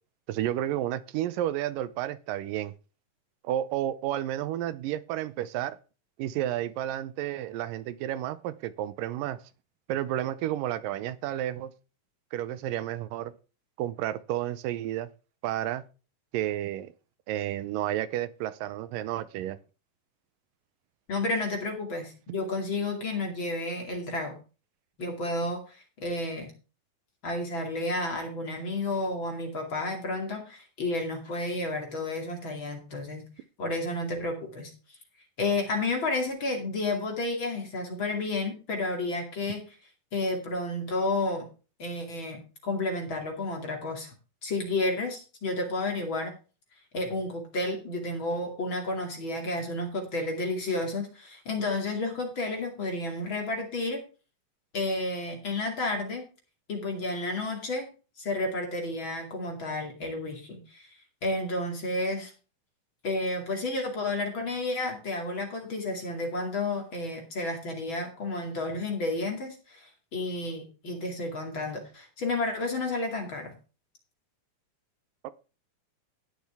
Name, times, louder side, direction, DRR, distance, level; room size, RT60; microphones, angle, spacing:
voice 1, 0.3-2.7 3.4-5.8 6.2-9.4 9.9-11.7 12.3-13.3 13.8-15.1 15.4-15.8 16.3-16.9 17.3-19.6 75.2-75.3, right 12 dB, 80° right, 2.3 m, -31 dB
voice 2, 21.1-24.4 25.0-26.5 27.2-33.2 33.6-34.7 35.4-39.6 40.1-41.5 41.8-44.1 44.4-46.3 46.9-54.0 54.7-56.2 56.7-57.9 58.2-61.0 61.2-62.3 63.0-73.5, left 2 dB, 40° left, 2.9 m, -31 dB
18.5 x 6.5 x 3.5 m
omnidirectional pair, 3.9 m